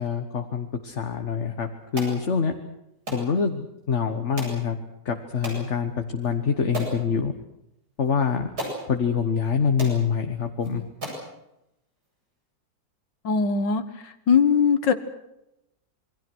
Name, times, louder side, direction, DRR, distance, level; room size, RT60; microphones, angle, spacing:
voice 1, 0.0-2.6 3.1-4.8 5.0-7.3 8.0-8.5 8.9-10.8, left 6 dB, 45° left, 5 dB, 1.6 m, -25 dB
sound 1, 2.0-2.2 3.1-3.3 4.4-4.6 5.4-5.6 6.2-6.3 6.7-7.0 8.0-8.1 8.6-8.8 9.5-9.6 9.8-10.0 10.6-10.7 11.0-11.3, right 1 dB, 60° right, 8.7 m, -33 dB
voice 2, 13.2-13.8 14.3-14.9, left 6 dB, 80° left, 10 dB, 2.1 m, -20 dB
27.5 x 22.0 x 6.3 m, 0.85 s
omnidirectional pair, 1.9 m